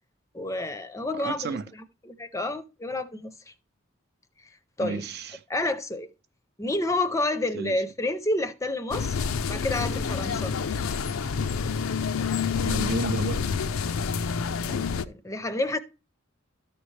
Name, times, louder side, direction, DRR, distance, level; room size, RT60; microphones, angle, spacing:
voice 1, 0.3-1.6 2.0-3.3 4.8-5.0 5.5-6.1 6.6-9.2 9.5-10.5 14.7-15.8, left 2 dB, 15° left, 0.5 m, -29 dB
voice 2, 1.1-1.7 4.8-5.4 7.5-7.8 12.7-13.6, right 5 dB, 50° right, 0.5 m, -32 dB
sound 1, 8.9-15.1, left 6 dB, 90° left, 0.5 m, -28 dB
13.0 x 5.3 x 3.2 m
head